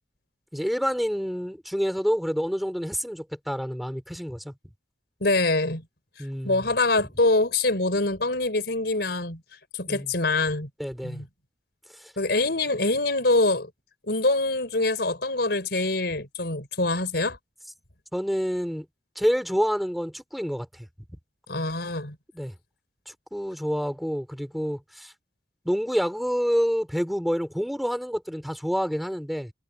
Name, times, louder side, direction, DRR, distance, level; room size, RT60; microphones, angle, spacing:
voice 1, 0.5-4.5 6.2-6.7 9.9-10.1 10.8-11.2 12.0-12.1 18.1-18.9 19.2-20.9 22.3-22.5 23.1-25.1 25.6-29.5, equal, ahead, 4.3 m, -28 dB
voice 2, 5.2-5.8 6.4-9.4 9.8-10.7 11.0-11.3 12.2-13.7 14.1-17.4 21.5-22.2, left 2 dB, 65° left, 5.0 m, -24 dB
head